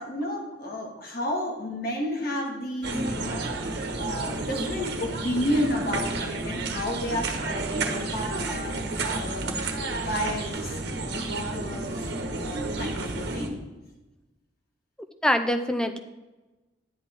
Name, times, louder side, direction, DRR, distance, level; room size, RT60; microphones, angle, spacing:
voice 1, 0.0-3.5 4.0-13.6, equal, 50° left, 0 dB, 2.0 m, -32 dB
sound 1, 2.8-13.5, right 2 dB, 55° right, 1.3 m, -31 dB
voice 2, 15.2-16.0, equal, 5° left, 6 dB, 0.6 m, -25 dB
11.0 x 8.1 x 4.6 m, 1.1 s
head